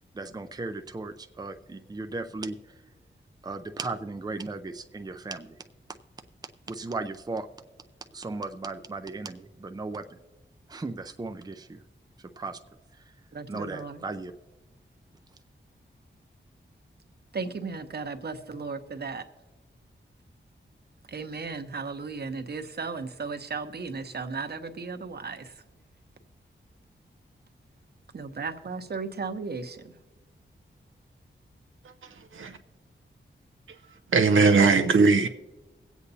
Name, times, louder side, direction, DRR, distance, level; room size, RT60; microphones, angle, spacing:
voice 1, 0.1-2.6 3.4-5.6 6.7-7.5 8.1-10.0 10.7-11.8 12.4-12.6 13.5-14.3, right 3 dB, 20° right, 0.5 m, -36 dB
voice 2, 13.3-14.0 17.3-19.2 21.1-25.6 28.1-30.0, right 4 dB, 55° right, 0.9 m, -35 dB
voice 3, 34.1-35.3, right 4 dB, 85° right, 0.6 m, -19 dB
23.5 x 8.3 x 2.8 m
wide cardioid pair, 80°, 20 cm